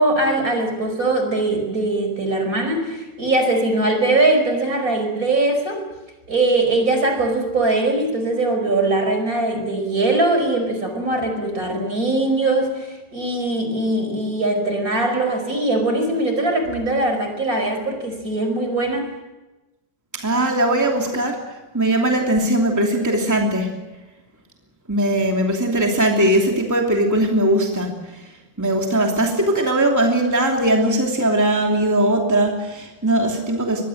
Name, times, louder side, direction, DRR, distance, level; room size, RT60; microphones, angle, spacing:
voice 1, 0.0-5.8 6.3-19.1, right 2 dB, 50° right, 5 dB, 5.5 m, -21 dB
voice 2, 20.1-21.4 21.7-23.7 24.9-28.2 28.6-33.8, right 1 dB, 10° right, 1 dB, 2.8 m, -19 dB
25.0 x 21.0 x 7.9 m, 1.1 s
omnidirectional pair, 1.9 m